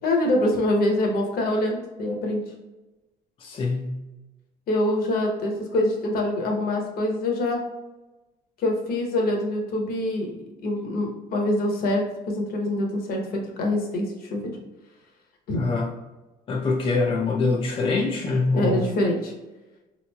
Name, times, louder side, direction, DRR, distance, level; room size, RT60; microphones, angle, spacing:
voice 1, 0.0-2.4 4.7-7.6 8.6-10.3 10.6-14.6 15.5-15.6 18.5-19.3, left 1 dB, 60° left, 1 dB, 0.8 m, -25 dB
voice 2, 3.4-4.0 15.6-15.9 16.5-18.9, left 3 dB, 35° left, -1 dB, 0.4 m, -24 dB
3.6 x 3.0 x 2.2 m, 1.1 s
cardioid pair, 110°, 17 cm